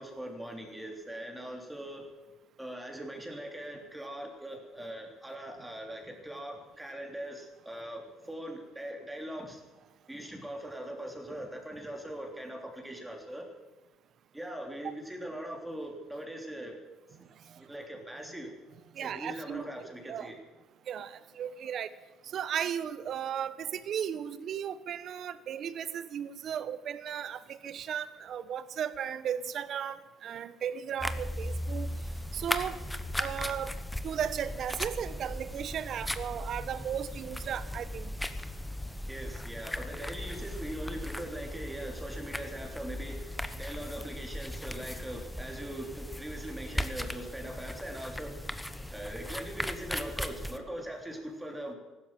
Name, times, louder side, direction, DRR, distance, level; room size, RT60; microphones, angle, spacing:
voice 1, 0.0-2.0 2.6-9.6 10.1-13.5 14.3-16.8 17.6-18.5 19.0-20.3 39.1-48.5 48.9-51.8, right 1 dB, 10° right, 1 dB, 3.4 m, -41 dB
voice 2, 18.9-19.7 20.1-20.3 20.9-21.9 22.2-31.9 32.3-32.8 33.2-33.7 34.0-38.1, right 9 dB, 55° right, 15 dB, 1.0 m, -35 dB
sound 1, 31.0-50.6, left 1 dB, 5° left, 1.1 m, -37 dB
15.5 x 12.0 x 7.6 m, 1.2 s
supercardioid pair, 95°, 0 cm